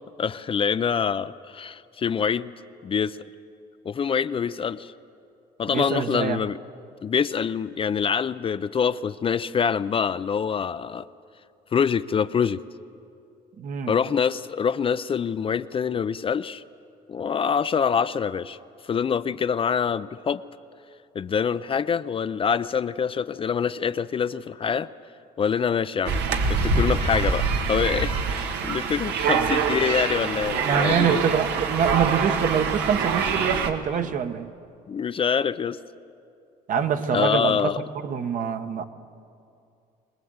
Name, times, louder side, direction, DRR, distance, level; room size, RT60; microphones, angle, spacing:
voice 1, 0.2-2.5 2.8-3.2 3.9-4.9 5.6-6.6 7.0-11.1 11.7-12.6 13.9-16.6 17.1-18.6 18.8-20.4 21.1-24.9 25.4-26.2 26.5-31.2 34.9-35.8 37.1-37.8, left 7 dB, 30° left, 13 dB, 0.5 m, -25 dB
voice 2, 5.7-6.4 13.6-13.9 29.3-29.5 30.6-34.5 36.7-37.7 38.0-38.8, right 7 dB, 50° right, 8 dB, 1.2 m, -25 dB
sound 1, 26.1-33.7, right 5 dB, 85° right, 1.6 m, -25 dB
23.5 x 19.5 x 8.0 m, 2.5 s
cardioid pair, 110°, 17 cm